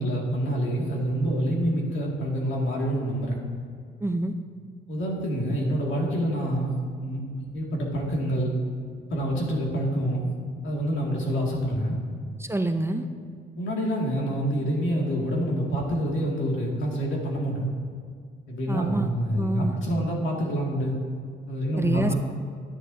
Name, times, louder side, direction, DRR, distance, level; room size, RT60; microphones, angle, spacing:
voice 1, 0.0-3.4 4.9-8.5 9.1-10.3 10.6-12.0 13.6-17.7 18.5-21.0 21.5-22.1, equal, 75° left, -2 dB, 2.2 m, -27 dB
voice 2, 4.0-4.3 12.4-13.0 18.7-19.8 21.8-22.1, right 2 dB, 10° right, 7 dB, 0.5 m, -27 dB
11.0 x 10.0 x 2.7 m, 2.1 s
cardioid pair, 90°, 20 cm